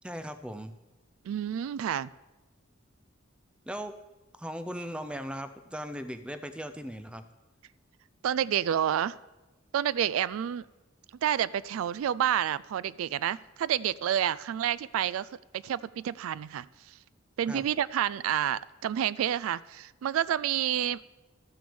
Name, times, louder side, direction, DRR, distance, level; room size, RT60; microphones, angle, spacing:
voice 1, 0.0-0.7 3.7-4.0 4.4-7.2 17.5-17.6, equal, 5° right, 10 dB, 0.5 m, -38 dB
voice 2, 1.3-2.1 8.2-9.2 9.7-10.7 11.2-15.3 15.5-16.7 17.4-21.0, right 10 dB, 90° right, 21 dB, 0.3 m, -29 dB
12.5 x 6.1 x 7.0 m, 1.1 s
head